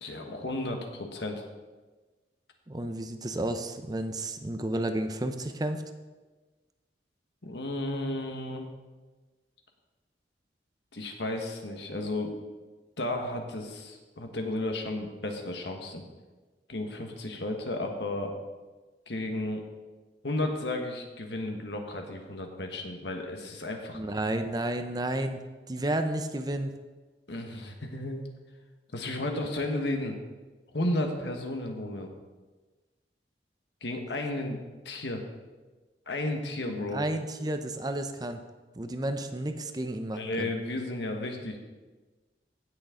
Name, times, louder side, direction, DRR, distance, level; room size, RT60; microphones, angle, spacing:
voice 1, 0.0-1.5 7.4-8.7 10.9-12.3 13.0-16.0 16.7-18.3 19.1-19.6 20.2-24.0 27.3-28.3 28.9-30.1 30.7-32.1 33.8-34.6 34.8-35.2 36.1-37.0 40.1-41.6, left 1 dB, 75° left, 3 dB, 1.4 m, -33 dB
voice 2, 2.7-5.8 23.9-25.4 25.7-26.7 36.9-38.4 38.7-40.5, right 1 dB, 20° right, 7 dB, 0.6 m, -31 dB
16.0 x 6.5 x 3.7 m, 1.3 s
head